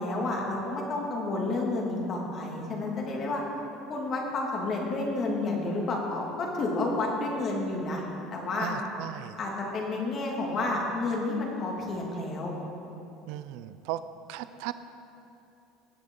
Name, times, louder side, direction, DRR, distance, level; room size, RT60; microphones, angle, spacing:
voice 1, 0.0-3.4 3.9-8.0 8.3-8.7 9.4-12.5, left 2 dB, 40° left, -1 dB, 2.4 m, -30 dB
voice 2, 8.6-9.4 13.3-14.0 14.3-14.7, right 14 dB, 75° right, 12 dB, 0.4 m, -37 dB
19.5 x 7.9 x 3.8 m, 2.8 s
supercardioid pair, 125°, 0 cm